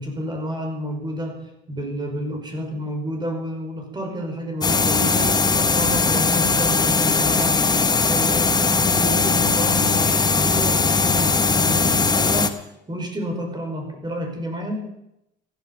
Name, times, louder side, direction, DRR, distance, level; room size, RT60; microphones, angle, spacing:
voice 1, 0.0-1.3 1.7-7.6 8.1-14.8, equal, 20° right, 3 dB, 5.3 m, -30 dB
sound 1, 4.6-12.5, left 4 dB, 20° left, 1.3 m, -19 dB
14.5 x 12.5 x 7.2 m, 0.84 s
cardioid pair, 110°, 20 cm